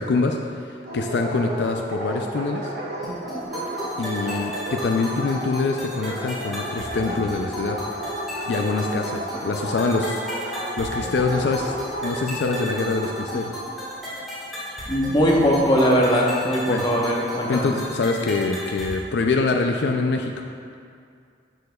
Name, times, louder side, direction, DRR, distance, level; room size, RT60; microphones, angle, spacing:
voice 1, 0.0-2.7 4.0-7.8 8.5-10.2 10.8-11.8 12.0-13.6 16.7-16.8 17.5-20.5, left 3 dB, 70° left, 3 dB, 0.4 m, -25 dB
Dog, 0.8-13.0, right 1 dB, 65° right, 1.8 m, -33 dB
sound 1, 3.0-19.0, equal, ahead, 1.5 m, -34 dB
voice 2, 14.9-17.7, equal, 25° left, -3 dB, 0.9 m, -20 dB
11.5 x 6.2 x 2.3 m, 2.3 s
head